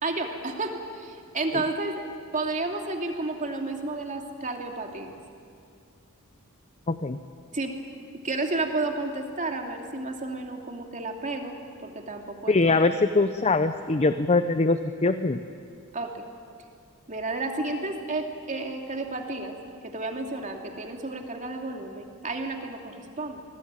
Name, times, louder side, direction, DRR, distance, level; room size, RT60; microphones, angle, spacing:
voice 1, 0.0-2.0 2.3-5.1 7.5-7.7 8.2-12.8 15.9-16.3 17.1-19.6 19.8-23.4, right 2 dB, 35° right, 3 dB, 2.7 m, -31 dB
voice 2, 6.9-7.2 12.5-15.4, left 3 dB, 30° left, 10 dB, 0.7 m, -23 dB
26.5 x 20.5 x 9.0 m, 2.3 s
head